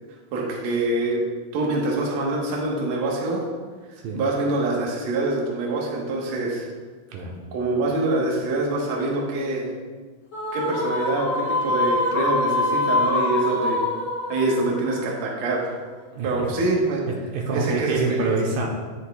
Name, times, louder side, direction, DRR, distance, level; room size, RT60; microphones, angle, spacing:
voice 1, 0.3-1.2 1.5-3.4 4.1-6.7 7.5-9.7 10.5-13.8 14.3-15.7 16.2-17.0 17.5-18.4, right 2 dB, 65° right, -2 dB, 2.0 m, -25 dB
sound 1, 10.3-15.7, left 2 dB, 50° left, 1.3 m, -25 dB
voice 2, 17.1-18.7, right 3 dB, 80° right, -1 dB, 2.4 m, -26 dB
9.9 x 6.5 x 2.2 m, 1.5 s
omnidirectional pair, 4.0 m